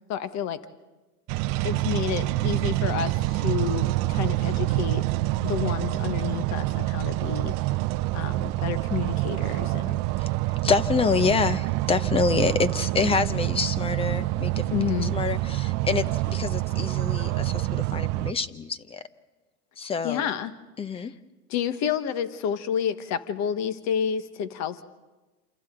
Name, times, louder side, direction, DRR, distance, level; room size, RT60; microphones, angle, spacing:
voice 1, 0.1-0.6 1.6-5.0 5.4-7.5 8.1-10.0 14.7-15.1 20.0-20.5 20.9-21.1 21.5-24.8, left 9 dB, 35° left, 11 dB, 1.4 m, -29 dB
sound 1, 1.3-18.3, right 18 dB, 35° right, 0.7 m, -26 dB
voice 2, 10.2-19.0 19.8-20.2 20.8-21.1, left 5 dB, 10° left, 15 dB, 0.6 m, -27 dB
28.0 x 27.5 x 3.9 m, 1.2 s
hypercardioid pair, 115°, 47 cm